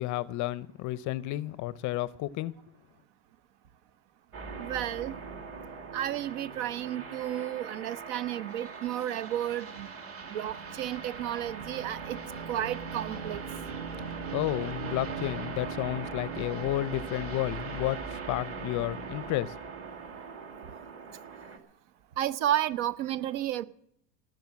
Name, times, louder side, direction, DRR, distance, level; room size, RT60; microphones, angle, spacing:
voice 1, 0.0-2.5 14.3-19.6, left 15 dB, 40° left, 0.6 m, -32 dB
sound 1, 4.3-21.6, right 5 dB, 30° right, 2.2 m, -40 dB
voice 2, 4.6-5.1 5.9-9.9 10.2-12.2 12.5-13.4 22.2-23.6, right 12 dB, 55° right, 1.0 m, -32 dB
18.0 x 6.6 x 8.4 m
supercardioid pair, 130°, 47 cm